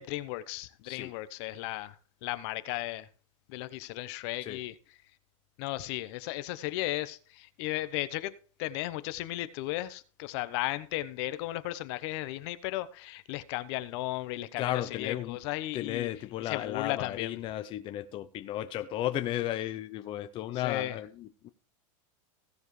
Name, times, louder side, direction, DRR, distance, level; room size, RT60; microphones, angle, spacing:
voice 1, 0.0-3.1 3.5-4.7 5.6-16.1 16.4-17.4 20.6-21.0, left 16 dB, 55° left, 1.0 m, -35 dB
voice 2, 14.6-15.4 15.7-21.5, left 13 dB, 30° left, 0.6 m, -34 dB
16.5 x 7.1 x 3.2 m
supercardioid pair, 145°, 17 cm